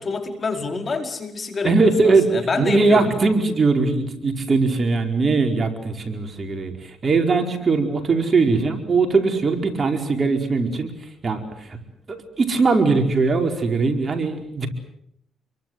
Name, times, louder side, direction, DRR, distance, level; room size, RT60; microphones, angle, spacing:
voice 1, 0.0-3.4, left 4 dB, 35° left, 5 dB, 4.7 m, -27 dB
voice 2, 1.6-2.3 2.5-10.9 11.2-11.8 12.1-14.7, right 3 dB, 35° right, 4 dB, 4.8 m, -20 dB
28.5 x 23.5 x 8.0 m, 0.73 s
cardioid pair, 90°, 0 cm